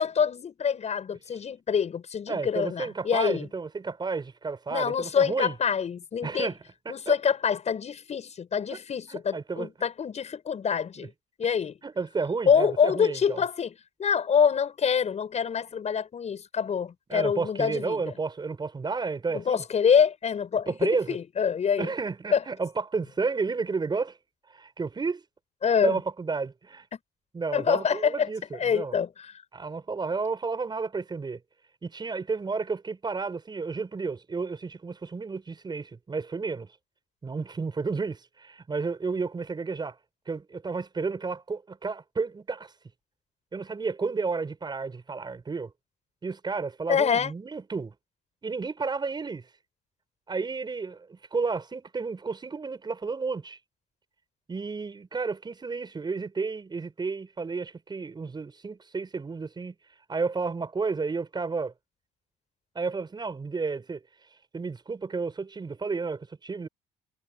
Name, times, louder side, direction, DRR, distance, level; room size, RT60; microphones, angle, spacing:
voice 1, 0.0-3.5 4.7-6.5 6.9-11.1 11.4-11.8 12.5-13.7 14.0-18.0 19.3-21.9 22.3-22.4 25.6-26.0 27.5-29.1 46.9-47.3, left 7 dB, 40° left, 7.3 m, -26 dB
voice 2, 2.3-5.6 6.2-7.1 8.7-8.8 9.1-9.7 11.0-11.1 11.8-13.4 17.1-19.6 20.7-21.2 21.8-24.2 24.5-25.2 25.8-26.9 27.3-29.0 29.5-31.4 31.8-36.7 37.2-40.0 40.3-42.7 43.5-45.7 46.2-47.9 48.4-49.5 50.3-53.6 54.5-59.7 60.1-61.7 62.7-64.0 64.5-66.7, right 4 dB, 25° right, 6.3 m, -32 dB
cardioid pair, 110°, 17 cm